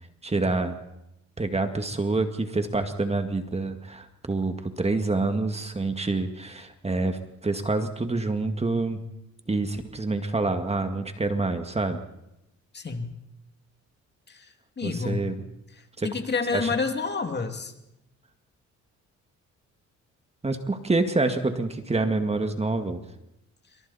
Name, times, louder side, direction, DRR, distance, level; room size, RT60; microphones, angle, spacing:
voice 1, 0.2-0.8 1.4-9.0 9.5-12.0 14.8-15.4 16.0-16.1 16.5-16.7 20.4-23.0, right 3 dB, 20° right, 7 dB, 2.0 m, -27 dB
voice 2, 12.7-13.2 14.3-14.5 14.8-15.3 16.0-17.7, left 4 dB, 35° left, 6 dB, 2.7 m, -29 dB
28.0 x 25.0 x 4.3 m, 0.87 s
cardioid pair, 90°, 30 cm